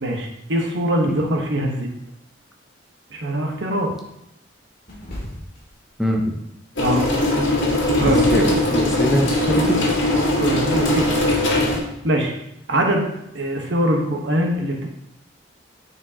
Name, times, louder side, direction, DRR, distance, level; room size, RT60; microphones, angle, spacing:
voice 1, 0.0-1.9 3.1-3.9 6.8-7.1 8.0-8.3 10.4-11.2 12.0-12.3 12.7-13.1 13.3-14.9, right 1 dB, 65° right, 1 dB, 1.1 m, -22 dB
sound 1, 4.9-5.7 7.2-9.5, left 1 dB, 50° left, 2.3 m, -33 dB
voice 2, 6.0-6.4 8.1-10.0, equal, ahead, 0 dB, 0.5 m, -23 dB
sound 2, 6.8-11.8, left 1 dB, 85° left, 1.7 m, -20 dB
8.8 x 4.6 x 2.8 m, 0.81 s
head